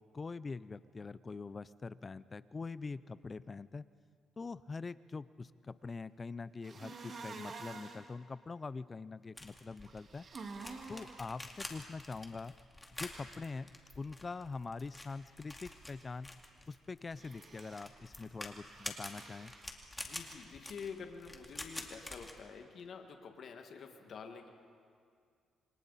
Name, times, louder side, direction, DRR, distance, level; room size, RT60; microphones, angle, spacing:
voice 1, 0.0-3.8 4.4-10.3 10.9-12.5 13.0-13.7 14.0-16.3 16.7-19.5, left 4 dB, 30° left, 17 dB, 0.5 m, -44 dB
sound 1, 6.6-8.0 9.8-11.2 17.1-17.9 18.6-19.7, right 4 dB, 45° right, 2.0 m, -49 dB
sound 2, 9.4-22.3, left 1 dB, 15° left, 2.4 m, -48 dB
voice 2, 20.0-24.5, left 6 dB, 60° left, 4 dB, 1.9 m, -48 dB
27.5 x 24.5 x 4.2 m, 2.3 s
cardioid pair, 90°, 0 cm